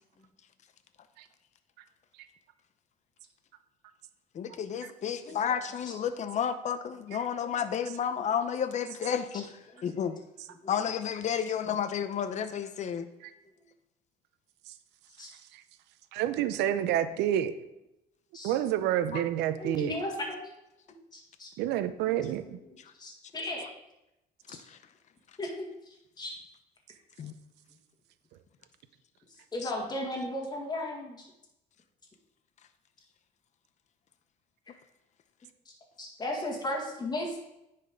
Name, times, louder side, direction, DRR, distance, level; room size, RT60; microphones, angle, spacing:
voice 1, 4.3-9.5 9.8-10.2 10.7-13.1 19.1-19.2 27.2-27.3, left 8 dB, 45° left, 10 dB, 0.7 m, -31 dB
voice 2, 16.1-17.5 18.4-19.9 21.6-22.6, right 11 dB, 90° right, 11 dB, 0.7 m, -28 dB
voice 3, 19.6-20.5 21.1-21.5 22.0-22.2 23.0-23.7 25.4-25.5 25.9-26.3 29.5-31.3 35.7-37.4, left 1 dB, 25° left, -1 dB, 1.9 m, -35 dB
9.9 x 4.3 x 5.1 m, 0.88 s
cardioid pair, 110°, 17 cm